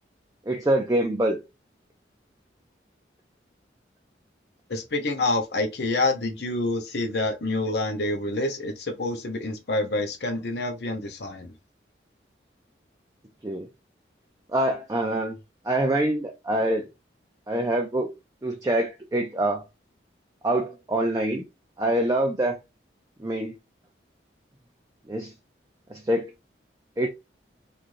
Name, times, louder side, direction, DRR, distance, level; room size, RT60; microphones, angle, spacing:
voice 1, 0.5-1.4 13.4-13.7 14.5-15.4 15.6-16.9 17.5-18.1 18.4-19.6 20.4-21.5 21.8-22.6 23.2-23.5 25.1-25.3 25.9-26.3 27.0-27.1, right 1 dB, 20° right, 0.4 m, -25 dB
voice 2, 4.7-11.5, left 2 dB, 65° left, 0.7 m, -27 dB
3.1 x 2.5 x 2.6 m
head